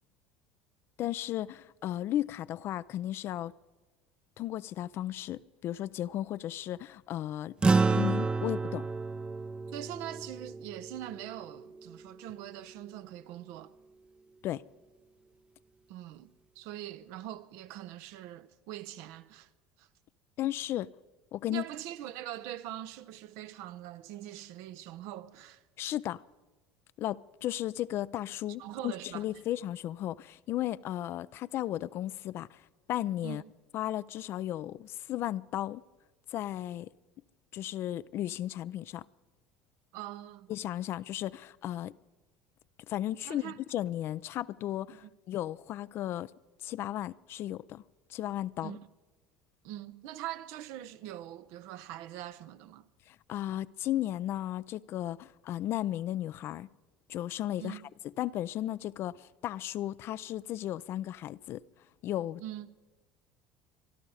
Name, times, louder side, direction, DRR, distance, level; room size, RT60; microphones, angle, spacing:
voice 1, 1.0-3.5 4.4-7.6 7.9-8.9 14.4-14.6 20.4-20.9 21.3-21.6 25.8-26.2 27.0-32.6 32.9-33.4 33.7-35.8 36.3-36.9 37.5-39.1 40.5-41.9 42.9-46.3 46.6-47.8 48.1-48.8 53.1-56.7 57.1-57.8 58.2-61.6 62.0-62.4, left 13 dB, 55° left, 0.4 m, -35 dB
sound 1, 7.6-12.3, right 4 dB, 20° right, 0.6 m, -30 dB
voice 2, 9.7-13.7 15.9-16.3 16.6-19.5 19.8-19.9 21.5-25.6 28.6-29.2 33.2-33.5 39.9-40.5 43.3-43.6 45.0-45.1 48.6-48.8 49.6-52.9 57.6-57.9 62.4-62.7, right 13 dB, 70° right, 0.7 m, -42 dB
24.0 x 12.0 x 4.9 m
hypercardioid pair, 75°, 5 cm